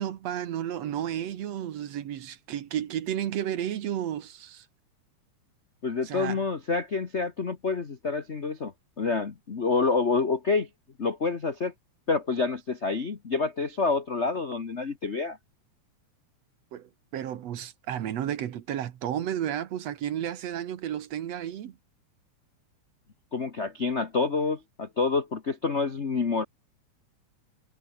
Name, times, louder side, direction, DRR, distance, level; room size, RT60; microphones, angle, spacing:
voice 1, 0.0-4.7 6.0-6.4 16.7-21.8, right 10 dB, 60° right, 2.2 m, -32 dB
voice 2, 5.8-8.7 9.0-10.7 11.0-11.7 12.1-15.4 23.3-26.4, left 4 dB, 65° left, 0.6 m, -27 dB
omnidirectional pair, 3.5 m